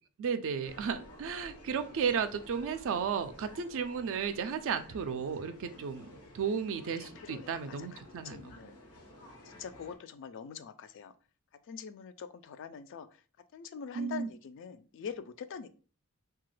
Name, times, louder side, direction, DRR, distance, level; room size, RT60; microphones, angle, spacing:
voice 1, 0.2-8.7 13.9-14.3, right 6 dB, 60° right, 10 dB, 0.4 m, -34 dB
sound 1, 0.6-10.0, left 1 dB, 80° left, 1.0 m, -53 dB
voice 2, 7.3-8.7 9.5-11.1 11.7-13.1 13.5-15.7, left 6 dB, 60° left, 10 dB, 0.3 m, -44 dB
2.9 x 2.3 x 3.1 m, 0.36 s
head